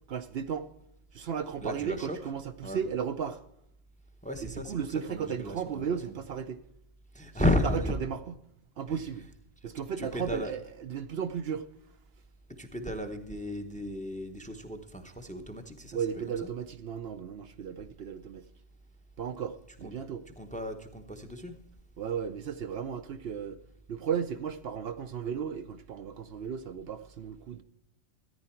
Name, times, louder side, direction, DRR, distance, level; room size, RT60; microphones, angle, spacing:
voice 1, 0.1-0.7 1.1-3.4 4.4-6.6 7.3-7.7 8.0-8.2 8.8-9.3 9.6-11.6 15.9-18.5 19.2-20.2 22.0-23.6 23.9-27.6, right 7 dB, 65° right, 0.8 m, -35 dB
voice 2, 1.6-2.3 2.6-2.9 4.2-6.2 7.1-8.0 8.9-9.3 9.6-9.7 10.0-10.5 12.5-16.5 19.7-20.0 20.2-21.5, left 1 dB, 5° left, 0.8 m, -34 dB
14.0 x 9.8 x 4.4 m
omnidirectional pair, 1.2 m